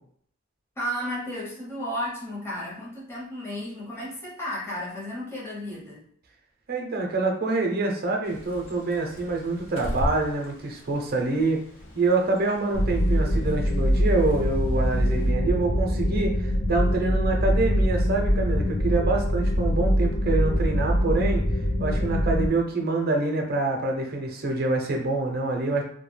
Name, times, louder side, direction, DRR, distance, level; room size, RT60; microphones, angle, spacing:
voice 1, 0.8-6.0, equal, 15° left, -6 dB, 0.8 m, -33 dB
voice 2, 6.7-11.6 12.0-21.4 21.8-25.8, right 3 dB, 50° right, 1 dB, 0.6 m, -26 dB
Bird, 8.2-15.3, equal, 85° left, 0.7 m, -38 dB
sound 1, 12.7-22.5, equal, 50° left, 0.5 m, -23 dB
2.3 x 2.1 x 3.2 m, 0.63 s
head